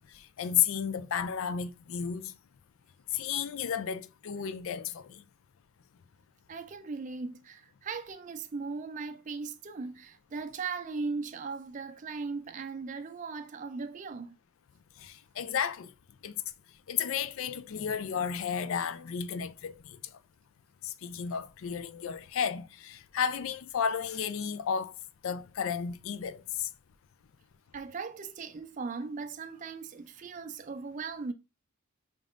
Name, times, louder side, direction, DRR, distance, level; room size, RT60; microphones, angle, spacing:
voice 1, 0.1-2.3 3.1-5.2 15.0-15.9 16.2-16.4 16.9-20.0 20.8-24.9 25.2-26.7, left 8 dB, 65° left, 0.4 m, -33 dB
voice 2, 6.5-14.4 27.7-31.3, right 4 dB, 35° right, 0.4 m, -38 dB
5.0 x 3.5 x 2.4 m
head